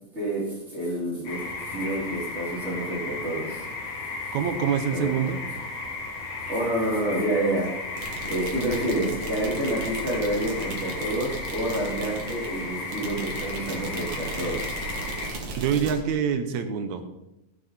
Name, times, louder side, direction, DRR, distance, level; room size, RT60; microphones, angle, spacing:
voice 1, 0.1-3.7 4.9-5.1 6.5-14.9, right 1 dB, 20° right, -6 dB, 4.6 m, -29 dB
sound 1, 1.2-15.3, left 3 dB, 75° left, 4.1 m, -35 dB
voice 2, 4.3-5.4 15.6-17.1, right 7 dB, 70° right, 9 dB, 2.2 m, -25 dB
sound 2, 8.0-15.9, right 2 dB, 50° right, 2.7 m, -36 dB
16.0 x 9.3 x 4.4 m, 0.93 s
omnidirectional pair, 3.5 m